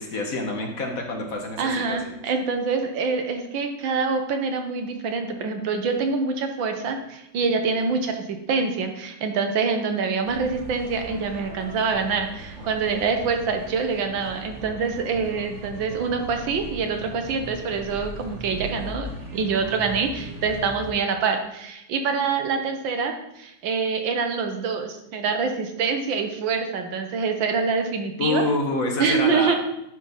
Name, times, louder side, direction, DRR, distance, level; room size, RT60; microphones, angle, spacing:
voice 1, 0.0-2.0 28.2-29.5, left 2 dB, 50° left, 2 dB, 1.4 m, -27 dB
voice 2, 1.6-28.4 29.0-29.6, right 5 dB, 80° right, 5 dB, 1.7 m, -25 dB
sound 1, 10.2-20.9, right 1 dB, 40° right, 1.6 m, -39 dB
10.0 x 4.0 x 5.6 m, 0.85 s
omnidirectional pair, 2.1 m